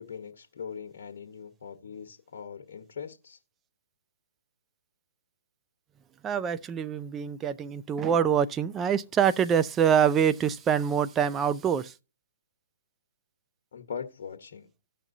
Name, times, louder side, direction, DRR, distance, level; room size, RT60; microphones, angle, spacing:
voice 1, 0.0-3.4 13.7-14.7, left 7 dB, 65° left, 1.1 m, -41 dB
voice 2, 6.2-12.0, right 8 dB, 20° right, 0.4 m, -25 dB
17.0 x 5.9 x 2.6 m
hypercardioid pair, 140°, 0 cm